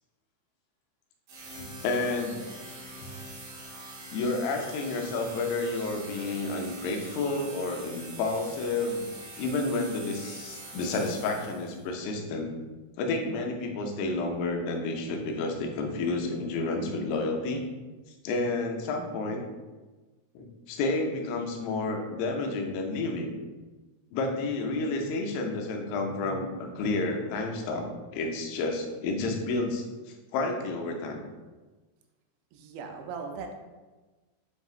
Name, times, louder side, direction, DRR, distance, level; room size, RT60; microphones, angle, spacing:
sound 1, 1.3-11.8, right 2 dB, 60° right, 2.8 m, -44 dB
voice 1, 1.6-2.5 4.1-9.1 9.4-12.5 13.0-17.6 18.2-19.4 20.4-23.3 24.1-31.2, left 3 dB, 90° left, 2 dB, 3.3 m, -30 dB
voice 2, 32.5-33.6, right 5 dB, 90° right, 4 dB, 3.2 m, -38 dB
7.7 x 2.7 x 2.4 m, 1.2 s
omnidirectional pair, 5.7 m